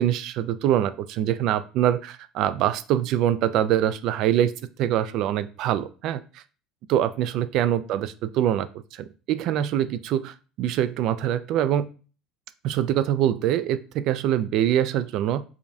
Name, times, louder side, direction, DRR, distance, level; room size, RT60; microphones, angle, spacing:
voice 1, 0.0-4.5 4.8-6.4 6.9-11.9 12.6-15.4, right 11 dB, 55° right, 14 dB, 0.3 m, -24 dB
4.9 x 2.3 x 2.7 m, 0.36 s
cardioid pair, 150°, 0 cm